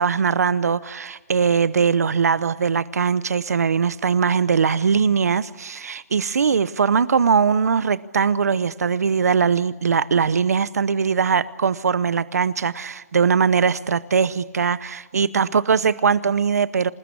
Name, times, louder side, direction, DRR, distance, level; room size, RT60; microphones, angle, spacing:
voice 1, 0.0-16.9, right 6 dB, 85° right, 17 dB, 0.8 m, -20 dB
26.5 x 19.5 x 8.4 m, 1.2 s
hypercardioid pair, 165°, 8 cm